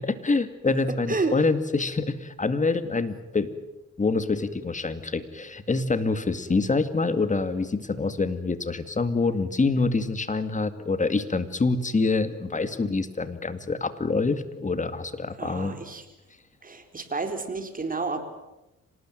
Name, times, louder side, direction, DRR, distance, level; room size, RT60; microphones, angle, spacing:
voice 1, 0.0-3.6 4.0-15.8, left 3 dB, 25° left, 11 dB, 2.3 m, -26 dB
voice 2, 15.4-16.0 16.6-18.2, right 3 dB, 30° right, 7 dB, 4.5 m, -30 dB
26.0 x 19.5 x 9.3 m, 0.95 s
cardioid pair, 90°, 30 cm